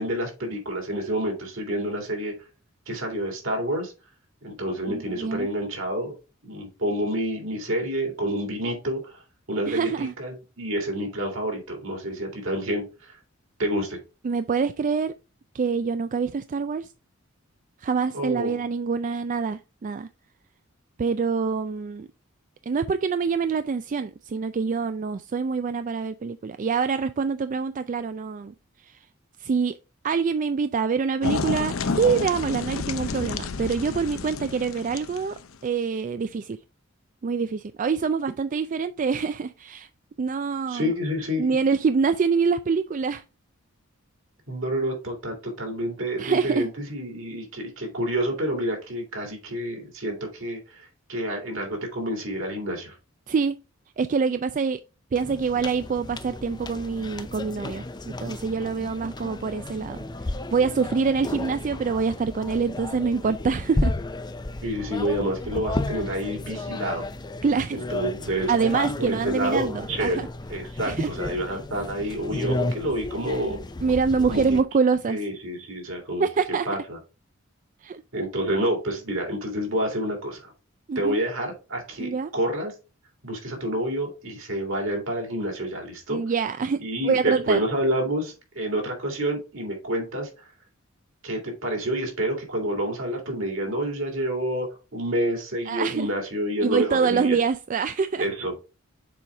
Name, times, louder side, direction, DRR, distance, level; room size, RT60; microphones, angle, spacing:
voice 1, 0.0-2.3 2.9-3.9 4.4-6.1 6.4-9.2 9.5-13.2 13.6-14.0 18.1-18.6 40.7-41.5 44.5-53.0 64.6-67.0 67.7-68.5 69.0-70.2 70.5-73.6 74.3-74.6 75.1-76.3 76.6-77.0 78.1-80.5 80.9-82.7 83.2-86.2 86.8-90.5 91.2-97.4 98.2-98.6, right 1 dB, 70° right, 3.1 m, -28 dB
voice 2, 4.9-5.5 9.7-10.1 14.2-15.1 15.5-16.9 17.8-20.1 21.0-22.1 22.7-28.5 28.9-29.0 29.4-29.7 30.0-36.6 37.2-39.9 40.2-40.9 41.4-43.2 46.2-46.7 53.3-53.6 54.0-54.8 55.1-60.0 60.5-63.9 67.4-67.8 68.5-69.7 70.0-70.3 70.9-71.1 73.8-75.2 76.2-76.7 77.8-78.0 80.9-81.2 82.0-82.3 86.1-87.6 95.7-96.1 96.6-98.3, right 5 dB, 40° right, 0.3 m, -25 dB
sound 1, 31.2-35.6, left 4 dB, 85° left, 0.7 m, -30 dB
sound 2, 55.1-74.6, left 2 dB, 20° left, 0.5 m, -33 dB
6.9 x 4.8 x 3.5 m
head